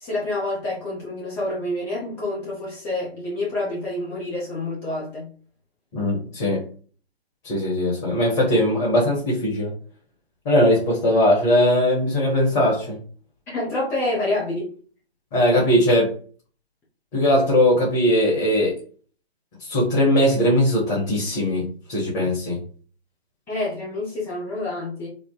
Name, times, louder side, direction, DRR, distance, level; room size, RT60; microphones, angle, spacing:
voice 1, 0.0-5.3 13.5-14.7 23.5-25.1, left 2 dB, 5° left, -6 dB, 0.5 m, -27 dB
voice 2, 5.9-6.6 7.4-9.7 10.4-13.0 15.3-16.1 17.1-18.7 19.6-22.6, left 1 dB, 25° left, -5 dB, 1.4 m, -20 dB
3.9 x 2.1 x 3.7 m, 0.41 s
figure-of-eight pair, 135°, 32 cm